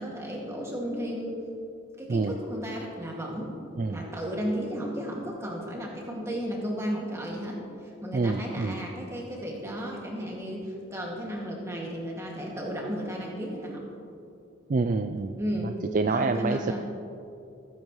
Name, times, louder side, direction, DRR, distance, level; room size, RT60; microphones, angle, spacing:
voice 1, 0.0-1.4 2.0-3.6 3.9-13.8 15.4-15.7 16.0-16.8, equal, 15° right, -3 dB, 2.2 m, -34 dB
voice 2, 8.1-8.8 14.7-15.4 15.9-16.8, right 3 dB, 40° right, 8 dB, 0.3 m, -27 dB
20.5 x 9.9 x 3.2 m, 2.7 s
head